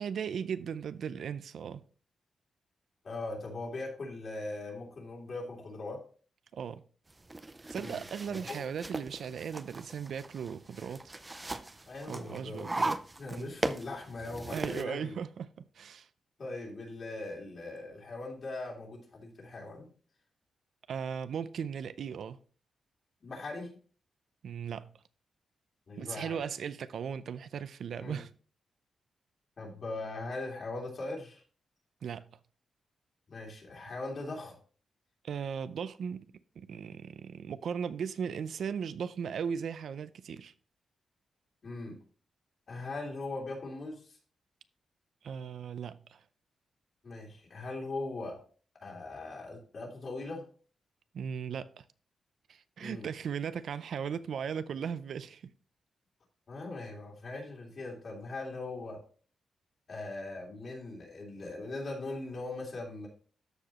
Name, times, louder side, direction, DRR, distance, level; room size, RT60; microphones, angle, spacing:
voice 1, 0.0-1.8 6.5-6.8 7.7-11.0 12.1-13.0 13.3-13.5 14.5-16.1 20.9-22.4 24.4-24.9 26.0-28.3 32.0-32.2 35.2-36.3 36.6-40.5 45.2-46.2 51.1-51.8 52.5-55.5, right 7 dB, 70° right, 0.5 m, -37 dB
voice 2, 3.0-6.0 7.8-8.6 11.9-12.7 13.2-15.2 16.4-19.9 23.2-23.8 25.9-26.4 28.0-28.2 29.6-31.4 33.3-34.6 41.6-42.0 42.7-44.2 47.0-48.4 48.8-50.4 52.8-53.1 56.5-59.0 59.9-63.1, left 2 dB, 45° left, 3.0 m, -40 dB
sound 1, 7.1-14.8, right 2 dB, 15° right, 0.5 m, -38 dB
13.0 x 5.0 x 3.0 m
wide cardioid pair, 135°, 0 cm